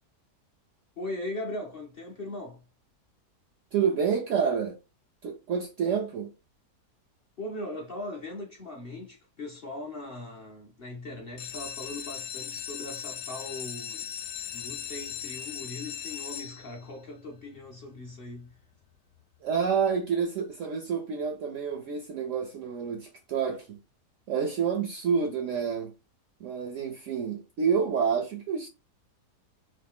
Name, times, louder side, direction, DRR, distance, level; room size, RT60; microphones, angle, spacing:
voice 1, 1.0-2.6 7.4-14.1 14.5-18.6, left 2 dB, 50° left, 0.7 m, -39 dB
voice 2, 3.7-4.8 5.2-6.3 19.4-23.8 24.3-25.9 26.4-28.7, right 6 dB, 70° right, 0.7 m, -28 dB
sound 1, 11.3-17.0 17.6-18.1 18.5-18.6 18.8-18.9 19.4-19.5, left 10 dB, 85° left, 1.2 m, -38 dB
3.1 x 2.6 x 3.5 m
omnidirectional pair, 1.7 m